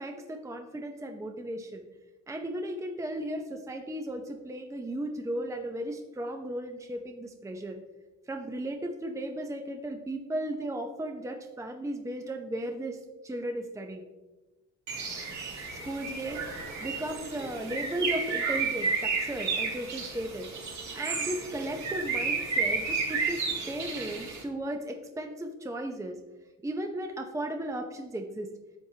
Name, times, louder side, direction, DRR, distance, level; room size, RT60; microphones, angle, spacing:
voice 1, 0.0-1.9 2.3-7.8 8.3-14.1 15.7-16.5 16.8-20.5 20.9-26.2 26.6-28.5, right 1 dB, 10° right, 4 dB, 0.7 m, -35 dB
Bird, 14.9-24.4, right 4 dB, 70° right, 2.3 m, -32 dB
10.5 x 7.1 x 2.8 m, 1.1 s
cardioid pair, 90°, 30 cm